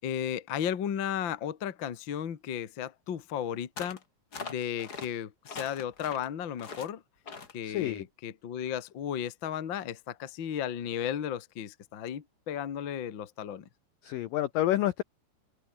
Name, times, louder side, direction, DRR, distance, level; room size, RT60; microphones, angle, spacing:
voice 1, 0.0-4.0 4.4-7.0 7.5-13.6, left 9 dB, 65° left, 1.2 m, -34 dB
sound 1, 3.8-4.0 4.3-5.1 5.4-6.3 6.6-6.9 7.3-7.6, left 4 dB, 30° left, 2.1 m, -42 dB
voice 2, 7.6-8.0 14.0-15.0, left 13 dB, 85° left, 1.9 m, -28 dB
open air
omnidirectional pair, 5.3 m